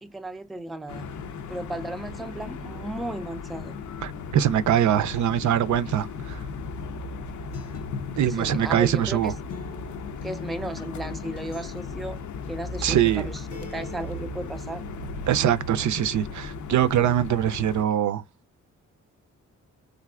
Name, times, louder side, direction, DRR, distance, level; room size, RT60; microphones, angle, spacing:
voice 1, 0.0-1.1 1.5-3.7 8.3-9.4 10.2-12.2 12.5-14.8, right 1 dB, ahead, 0.4 m, -35 dB
sound 1, 0.9-17.8, left 4 dB, 70° left, 0.6 m, -36 dB
voice 2, 4.0-6.4 8.2-9.3 12.8-13.3 15.3-18.2, right 10 dB, 70° right, 0.5 m, -23 dB
Acoustic guitar, 7.5-15.5, left 4 dB, 90° left, 0.9 m, -45 dB
3.3 x 2.5 x 2.3 m
cardioid pair, 85°, 31 cm